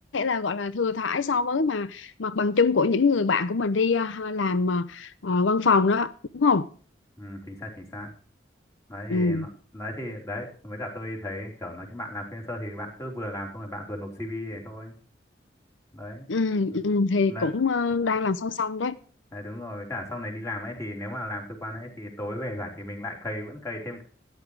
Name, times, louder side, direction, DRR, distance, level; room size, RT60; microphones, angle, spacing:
voice 1, 0.1-6.7 9.1-9.5 16.3-19.0, left 4 dB, 90° left, 0.7 m, -24 dB
voice 2, 7.2-8.1 8.9-14.9 15.9-16.3 17.3-17.5 19.3-24.0, left 1 dB, 15° left, 3.5 m, -35 dB
14.0 x 9.6 x 4.7 m
head